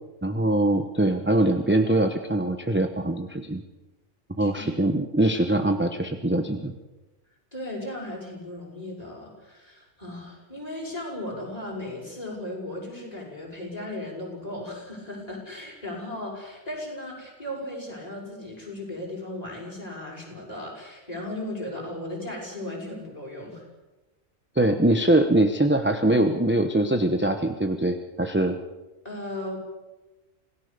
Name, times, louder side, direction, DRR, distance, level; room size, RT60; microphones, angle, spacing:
voice 1, 0.2-3.6 4.4-6.7 24.5-28.6, right 1 dB, 10° right, 6 dB, 1.1 m, -23 dB
voice 2, 4.4-4.7 7.5-23.6 29.0-29.6, left 1 dB, 25° left, -2 dB, 6.4 m, -36 dB
27.0 x 17.0 x 6.9 m, 1.1 s
omnidirectional pair, 1.4 m